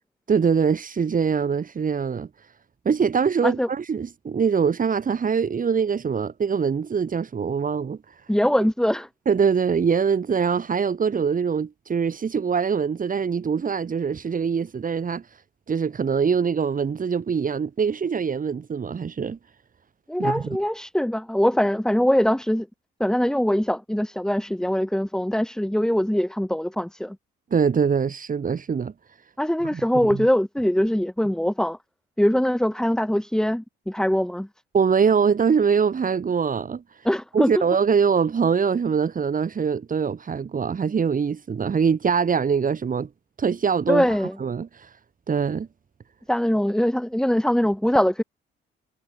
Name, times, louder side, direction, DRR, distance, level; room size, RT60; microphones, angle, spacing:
voice 1, 0.3-2.5 2.9-8.3 9.3-15.4 15.7-19.4 20.2-20.6 27.5-28.9 29.7-30.3 34.7-37.1 37.3-43.1 43.4-45.0 45.3-45.7, right 6 dB, 45° right, 7.1 m, -23 dB
voice 2, 8.3-9.1 20.1-22.7 23.0-27.2 29.4-31.8 32.2-34.5 37.0-37.5 43.9-44.4 46.3-48.2, equal, 5° left, 6.5 m, -22 dB
cardioid pair, 90°, 20 cm